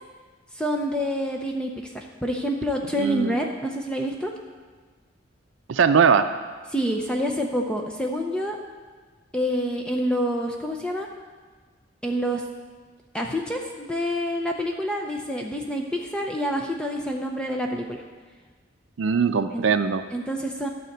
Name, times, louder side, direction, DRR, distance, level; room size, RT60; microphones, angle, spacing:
voice 1, 0.5-4.3 6.7-8.6 9.3-11.1 12.0-12.4 13.1-18.0 19.5-19.7 20.1-20.7, equal, 5° left, 1 dB, 0.6 m, -27 dB
voice 2, 3.0-3.3 5.7-6.3 19.0-20.0, right 6 dB, 80° right, 7 dB, 0.5 m, -20 dB
12.0 x 4.2 x 7.8 m, 1.5 s
head